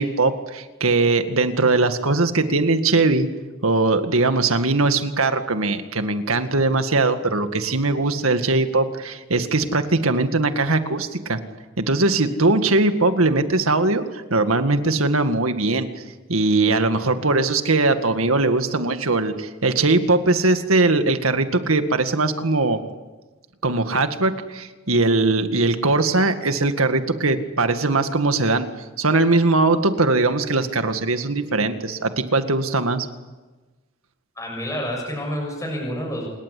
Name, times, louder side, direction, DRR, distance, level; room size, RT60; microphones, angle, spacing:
voice 1, 0.0-3.3 3.6-11.4 11.8-15.9 16.3-22.8 23.6-28.7 29.0-33.1, right 3 dB, 85° right, 8 dB, 2.0 m, -20 dB
voice 2, 34.4-36.3, equal, 15° left, -1 dB, 7.0 m, -28 dB
27.5 x 20.5 x 8.5 m, 1.2 s
head